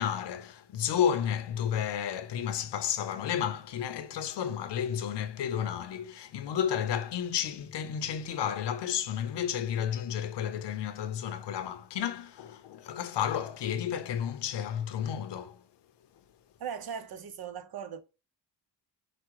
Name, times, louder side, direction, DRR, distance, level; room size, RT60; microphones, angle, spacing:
voice 1, 0.0-15.6, left 9 dB, 75° left, 0.8 m, -32 dB
voice 2, 16.6-18.0, right 7 dB, 60° right, 0.7 m, -38 dB
5.1 x 2.2 x 4.5 m
cardioid pair, 115°, 42 cm